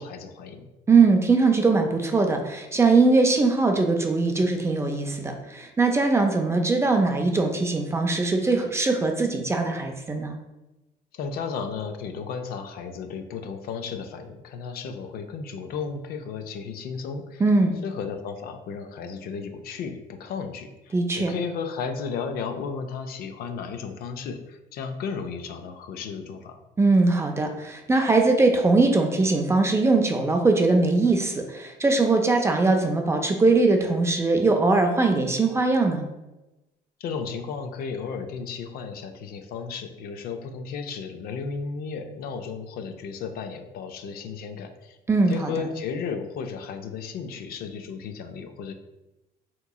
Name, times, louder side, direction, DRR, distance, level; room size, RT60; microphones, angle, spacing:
voice 1, 0.0-0.7 11.1-17.4 17.8-26.6 37.0-45.0 45.3-48.7, left 5 dB, 65° left, 7 dB, 0.4 m, -34 dB
voice 2, 0.9-10.4 17.4-17.8 20.9-21.3 26.8-36.1 45.1-45.7, right 3 dB, 15° right, 4 dB, 0.4 m, -21 dB
3.6 x 2.9 x 2.3 m, 1.0 s
cardioid pair, 110°, 17 cm